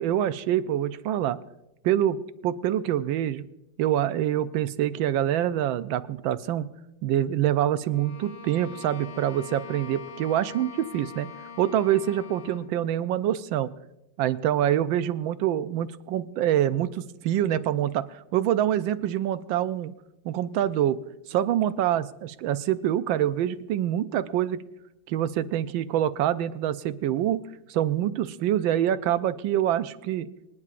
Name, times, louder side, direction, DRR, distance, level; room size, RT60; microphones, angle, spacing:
voice 1, 0.0-1.4 1.8-3.5 3.8-6.7 7.0-11.3 11.6-13.7 14.2-19.9 20.2-21.0 21.3-24.6 25.1-27.4 27.7-30.3, right 11 dB, 85° right, 13 dB, 1.4 m, -25 dB
Bowed string instrument, 7.9-12.7, left 6 dB, 65° left, 1.3 m, -43 dB
25.0 x 9.8 x 2.5 m, 0.89 s
omnidirectional pair, 2.1 m